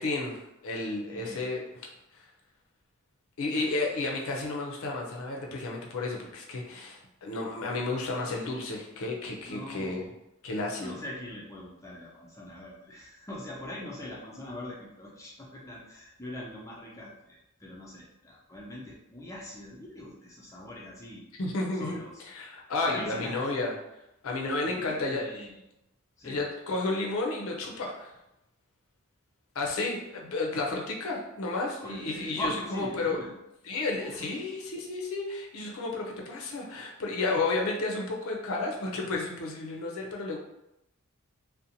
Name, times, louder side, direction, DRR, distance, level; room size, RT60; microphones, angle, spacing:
voice 1, 0.0-1.6 3.4-10.0 10.4-10.9 21.4-22.0 22.3-23.7 24.2-25.5 26.2-28.1 29.6-33.2 33.7-40.4, left 2 dB, 70° left, 0 dB, 0.5 m, -32 dB
voice 2, 1.1-1.5 3.6-3.9 9.4-10.2 10.8-21.2 21.7-22.2 22.9-23.4 24.6-25.6 26.2-26.4 31.8-33.3 33.9-34.3, left 1 dB, 15° left, -4 dB, 0.4 m, -41 dB
2.5 x 2.1 x 2.7 m, 0.87 s
head